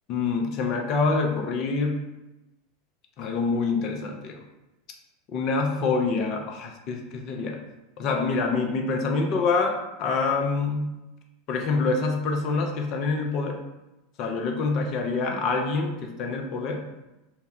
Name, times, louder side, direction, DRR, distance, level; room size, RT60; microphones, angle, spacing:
voice 1, 0.1-2.0 3.2-4.4 5.3-7.6 8.0-11.0 11.5-13.6 14.2-16.9, left 4 dB, 40° left, 3 dB, 0.4 m, -26 dB
2.1 x 2.0 x 3.5 m, 0.99 s
figure-of-eight pair, 80°, 0 cm